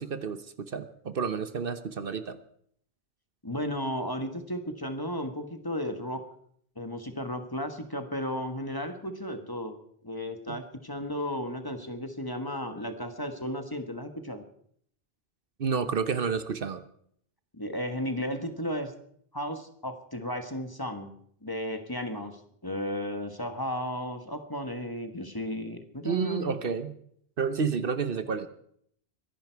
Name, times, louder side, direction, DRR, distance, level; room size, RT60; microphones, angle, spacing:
voice 1, 0.0-2.4 10.5-10.6 15.6-16.8 26.0-26.9 27.4-28.5, right 6 dB, 60° right, 12 dB, 1.1 m, -30 dB
voice 2, 3.4-6.2 6.8-9.8 10.0-14.4 17.5-18.9 19.3-21.1 21.4-26.7, equal, 20° left, 7 dB, 1.4 m, -34 dB
23.5 x 11.0 x 4.6 m, 0.66 s
omnidirectional pair, 1.0 m